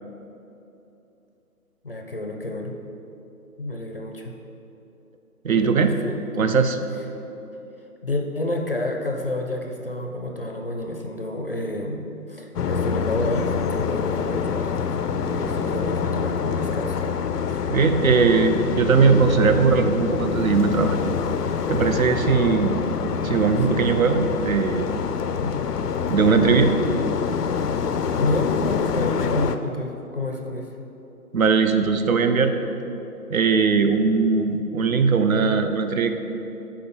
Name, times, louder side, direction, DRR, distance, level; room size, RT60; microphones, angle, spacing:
voice 1, 1.8-2.8 3.6-4.3 5.5-6.6 8.0-14.9 15.2-17.1 17.5-17.6 25.4-25.7 28.2-30.7, left 2 dB, 40° left, 2 dB, 0.5 m, -29 dB
voice 2, 5.4-5.9 6.4-6.8 17.7-21.0 21.7-22.8 23.2-24.9 26.1-26.7 31.3-32.5 33.3-36.1, right 5 dB, 60° right, 8 dB, 0.6 m, -19 dB
sound 1, 12.5-29.6, left 6 dB, 85° left, 0.6 m, -26 dB
6.9 x 4.8 x 5.4 m, 3.0 s
figure-of-eight pair, 160°, 46 cm